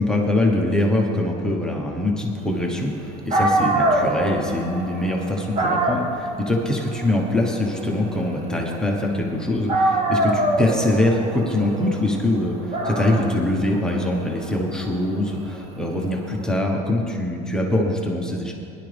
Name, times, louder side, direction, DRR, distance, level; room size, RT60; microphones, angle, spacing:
voice 1, 0.0-18.5, left 1 dB, 5° left, -1 dB, 1.2 m, -23 dB
Dog, 3.0-3.1 3.3-9.3 9.7-16.5, right 1 dB, 35° right, 1.3 m, -25 dB
18.0 x 11.0 x 3.5 m, 2.6 s
cardioid pair, 130°, 19 cm